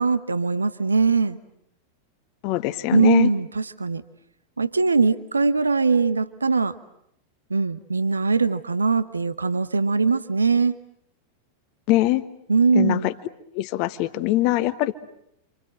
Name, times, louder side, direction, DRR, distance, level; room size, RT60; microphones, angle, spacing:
voice 1, 0.0-1.4 2.9-4.0 4.6-6.8 7.5-10.8 12.5-13.1, right 4 dB, 75° right, 14 dB, 1.0 m, -21 dB
voice 2, 2.4-3.3 11.9-12.2 12.7-13.1 13.5-14.9, left 16 dB, 45° left, 12 dB, 1.4 m, -22 dB
28.5 x 27.0 x 7.6 m, 0.75 s
figure-of-eight pair, 90°, 0 cm